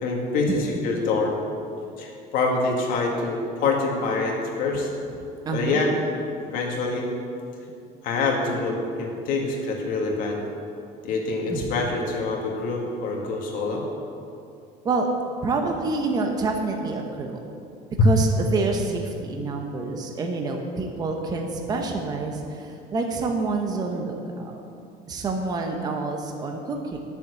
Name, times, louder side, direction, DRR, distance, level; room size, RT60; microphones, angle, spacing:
voice 1, 0.0-1.4 2.0-4.9 5.5-5.9 6.5-7.1 8.0-10.4 11.0-13.8 18.0-18.1, left 3 dB, 55° left, 0 dB, 2.2 m, -25 dB
voice 2, 5.4-5.8 11.5-11.7 14.8-15.1 15.4-17.4 18.0-24.6 25.1-27.0, right 3 dB, 20° right, 3 dB, 0.9 m, -27 dB
11.0 x 7.2 x 8.2 m, 2.5 s
cardioid pair, 170°, 17 cm